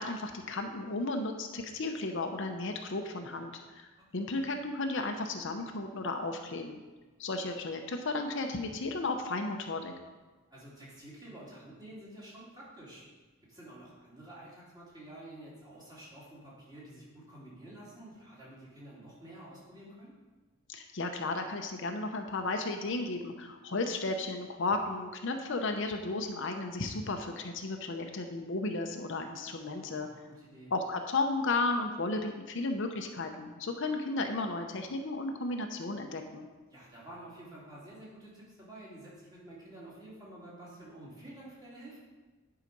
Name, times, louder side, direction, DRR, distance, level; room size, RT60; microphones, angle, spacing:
voice 1, 0.0-6.8 7.2-9.9 20.7-30.1 30.7-36.5, left 2 dB, 60° left, 4 dB, 0.7 m, -34 dB
voice 2, 10.5-13.0 13.5-20.1 29.8-30.7 36.7-42.0, right 1 dB, 20° right, -7 dB, 2.9 m, -50 dB
10.5 x 4.9 x 5.3 m, 1.3 s
head